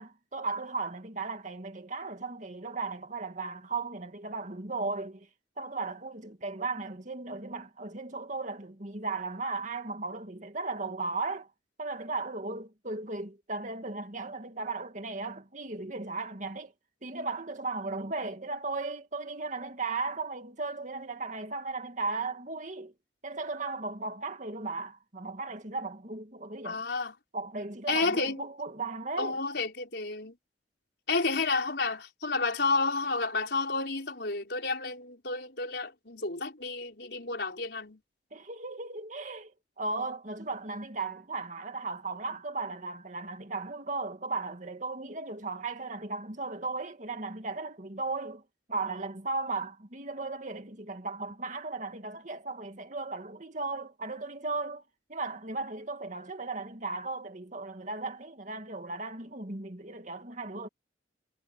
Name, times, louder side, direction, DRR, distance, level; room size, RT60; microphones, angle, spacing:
voice 1, 0.0-5.3 5.6-11.5 11.8-16.7 17.0-22.9 23.2-26.8 27.3-29.4 38.3-48.4 48.7-54.8 55.1-60.7, right 3 dB, 40° right, 2.2 m, -36 dB
voice 2, 26.6-27.1 27.9-28.4 29.2-30.3 31.1-38.0, left 3 dB, 60° left, 4.9 m, -31 dB
head